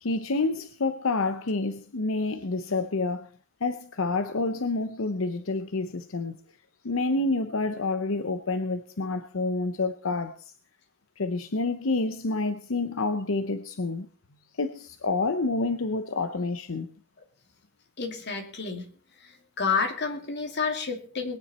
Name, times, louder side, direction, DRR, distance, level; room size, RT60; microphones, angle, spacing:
voice 1, 0.0-3.3 3.6-6.4 6.8-10.5 11.2-14.1 14.6-16.9, left 3 dB, 80° left, 0.8 m, -28 dB
voice 2, 18.0-18.9 19.2-21.4, left 5 dB, 55° left, 2.7 m, -30 dB
21.0 x 9.7 x 4.3 m
head